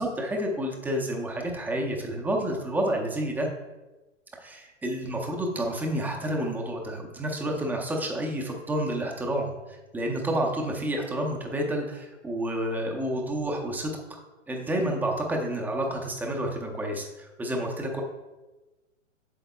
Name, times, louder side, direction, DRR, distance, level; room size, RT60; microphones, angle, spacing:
voice 1, 0.0-3.5 4.4-9.5 9.9-14.2 14.5-18.0, right 1 dB, 5° right, 0 dB, 0.6 m, -29 dB
8.1 x 7.1 x 2.3 m, 1.1 s
hypercardioid pair, 125°, 38 cm